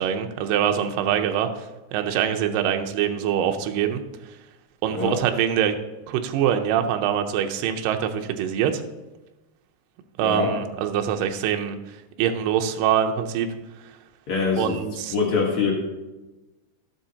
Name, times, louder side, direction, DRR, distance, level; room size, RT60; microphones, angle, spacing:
voice 1, 0.0-1.7 1.9-4.0 4.8-5.8 6.1-8.8 10.2-13.5 14.6-15.1, right 9 dB, 85° right, 5 dB, 1.9 m, -24 dB
voice 2, 10.2-10.5 14.3-14.8 15.1-15.7, left 4 dB, 85° left, -2 dB, 1.2 m, -23 dB
14.0 x 6.9 x 2.8 m, 1.1 s
omnidirectional pair, 4.8 m